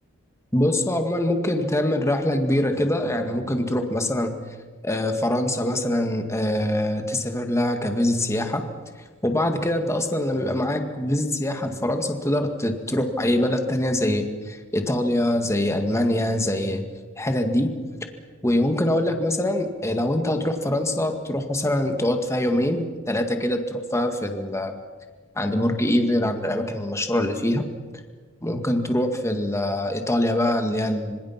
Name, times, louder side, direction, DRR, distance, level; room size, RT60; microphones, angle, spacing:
voice 1, 0.5-4.4 4.8-8.7 9.2-16.9 17.2-17.7 18.4-24.7 25.4-27.6 28.4-31.2, left 1 dB, 15° left, 5 dB, 2.0 m, -24 dB
26.5 x 26.0 x 5.9 m, 1.4 s
head